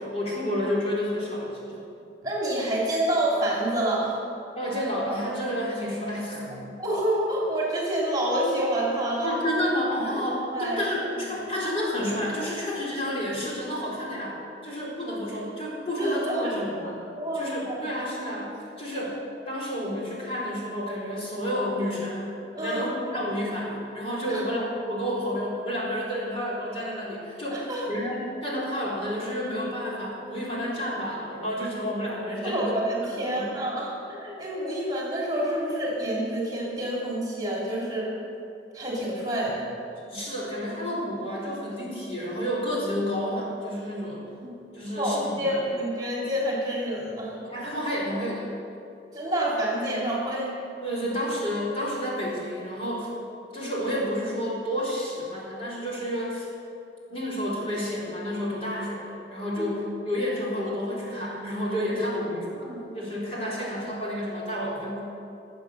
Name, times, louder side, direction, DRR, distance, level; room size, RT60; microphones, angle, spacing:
voice 1, 0.0-1.8 4.5-6.6 9.2-14.4 14.6-17.0 17.3-19.2 19.4-22.3 22.6-32.8 33.1-33.6 40.1-44.2 44.7-45.6 47.4-48.5 50.8-53.1 53.5-56.5 57.1-62.5 62.9-65.0, equal, 30° left, -6 dB, 4.1 m, -30 dB
voice 2, 2.2-4.1 6.8-9.4 10.0-10.2 10.5-10.8 15.0-15.2 16.0-16.8 17.2-17.9 22.5-22.9 24.3-24.4 27.5-27.9 32.4-38.1 38.7-39.7 44.4-44.5 44.9-47.3 49.1-50.6 59.6-59.7 62.5-62.8, right 1 dB, 20° right, -5 dB, 2.6 m, -28 dB
21.0 x 7.8 x 6.5 m, 2.8 s
head